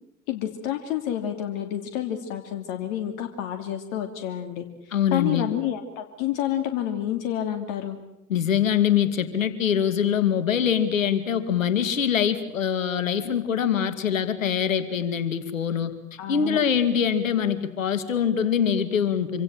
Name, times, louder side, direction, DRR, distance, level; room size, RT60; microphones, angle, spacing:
voice 1, 0.3-4.7 5.1-8.0 16.2-16.6, left 11 dB, 60° left, 5 dB, 2.8 m, -29 dB
voice 2, 4.9-5.5 8.3-15.9 16.3-19.4, left 8 dB, 80° left, 11 dB, 2.5 m, -24 dB
27.0 x 26.0 x 7.6 m, 0.85 s
figure-of-eight pair, 70°, 39 cm